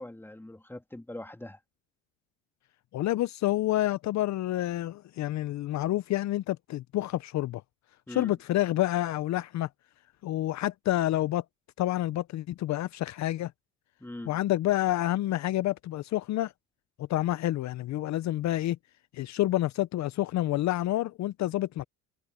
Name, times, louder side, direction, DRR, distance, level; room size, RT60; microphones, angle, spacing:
voice 1, 0.0-1.6 8.1-8.3 14.0-14.4, left 1 dB, 5° left, 2.8 m, -42 dB
voice 2, 2.9-7.6 8.1-9.7 10.2-11.4 11.8-13.5 14.3-16.5 17.1-18.8 19.1-21.8, left 15 dB, 60° left, 0.8 m, -28 dB
supercardioid pair, 75°, 32 cm